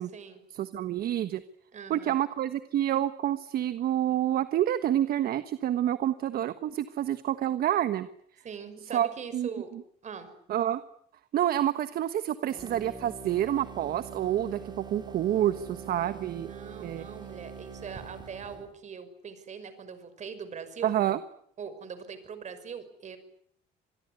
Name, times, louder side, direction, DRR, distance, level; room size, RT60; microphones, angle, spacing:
voice 1, 0.5-1.4 1.9-8.1 8.9-9.1 9.3-9.5 10.5-10.8 11.3-16.5 16.8-17.1 20.8-21.2, right 11 dB, 60° right, 12 dB, 1.4 m, -28 dB
voice 2, 1.7-2.2 8.4-9.7 10.0-10.3 16.4-20.9 21.6-23.2, right 6 dB, 45° right, 12 dB, 5.8 m, -41 dB
sound 1, 12.5-18.7, right 6 dB, 25° right, 5.2 m, -44 dB
26.5 x 21.0 x 9.6 m, 0.66 s
cardioid pair, 110°, 17 cm